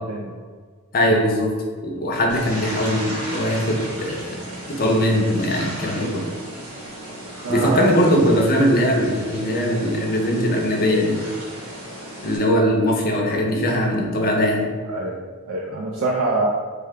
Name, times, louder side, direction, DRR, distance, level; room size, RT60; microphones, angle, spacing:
voice 1, 0.1-0.4 7.4-8.4 14.9-15.2 15.5-16.5, right 2 dB, 60° right, -2 dB, 0.4 m, -24 dB
voice 2, 0.9-1.5 1.8-4.4 4.8-6.3 7.5-11.3 12.2-14.7, equal, 45° left, 0 dB, 0.6 m, -20 dB
sound 1, 2.3-12.4, right 1 dB, 80° right, 1.0 m, -35 dB
3.1 x 2.2 x 3.6 m, 1.6 s
head